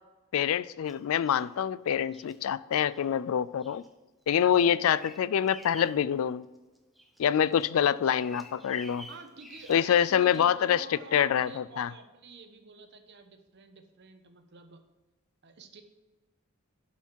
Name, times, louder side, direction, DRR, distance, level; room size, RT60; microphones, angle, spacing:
voice 1, 0.3-3.8 4.3-6.4 7.2-9.1 9.7-10.9 11.1-11.9, left 9 dB, 65° left, 19 dB, 0.3 m, -26 dB
Bird vocalization bird call bird song, 0.9-1.5 2.1-2.4 2.9-3.1 3.6-3.9 4.2-6.0 6.4-7.2 7.5-10.7 11.4-11.6, equal, ahead, 0.8 m, -51 dB
voice 2, 4.6-4.9 7.7-8.1 9.1-14.8 15.4-15.8, right 4 dB, 50° right, 7 dB, 1.0 m, -49 dB
11.5 x 5.7 x 4.6 m, 1.2 s
head